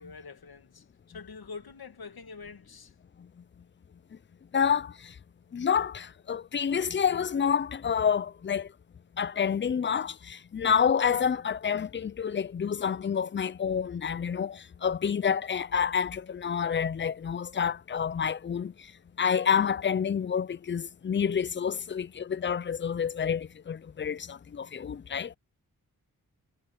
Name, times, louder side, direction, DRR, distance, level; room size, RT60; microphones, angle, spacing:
voice 1, 0.0-2.9, left 4 dB, 75° left, 2.2 m, -45 dB
voice 2, 4.5-5.1 5.5-8.7 9.2-18.7 19.2-25.3, left 7 dB, 30° left, 0.4 m, -28 dB
wide cardioid pair, 95°, 37 cm